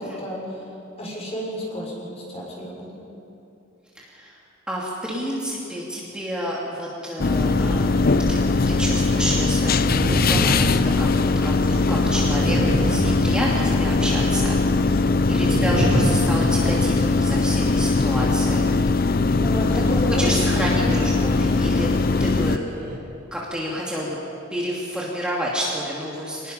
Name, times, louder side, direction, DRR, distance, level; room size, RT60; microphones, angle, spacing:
voice 1, 0.0-3.0 19.4-20.2, equal, 35° left, -3 dB, 6.3 m, -32 dB
voice 2, 3.9-4.4 4.7-8.4 8.7-15.0 15.3-18.7 19.2-19.4 19.7-21.9 22.2-22.6 23.3-24.2 24.5-26.5, equal, 5° right, -5 dB, 2.7 m, -29 dB
sound 1, 7.2-22.6, left 3 dB, 50° left, 0.6 m, -20 dB
sound 2, 7.4-8.2 8.6-8.7 9.7-11.5 12.2-13.9 15.4-17.1 20.4-21.3 21.7-21.9 22.6-23.0, equal, 50° right, 3.5 m, -27 dB
26.0 x 20.0 x 5.6 m, 2.9 s
head